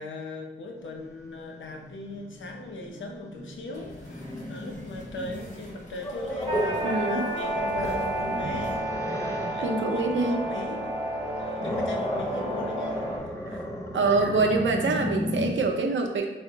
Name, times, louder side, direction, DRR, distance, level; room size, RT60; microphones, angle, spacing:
voice 1, 0.0-4.2 4.5-8.9 9.4-13.6, left 2 dB, 85° left, 2 dB, 0.6 m, -39 dB
Growling, 0.8-6.9 7.4-9.7 11.1-15.5, left 1 dB, 15° left, 0.4 m, -35 dB
sound 1, 3.7-8.8, equal, 40° left, 0.9 m, -44 dB
sound 2, 6.5-13.2, right 1 dB, 25° right, 0.9 m, -30 dB
voice 2, 6.8-7.2 9.6-10.4 13.5-13.6 13.9-16.3, right 3 dB, 80° right, 3 dB, 0.5 m, -25 dB
4.3 x 2.1 x 3.8 m, 1.1 s
wide cardioid pair, 140°, 19 cm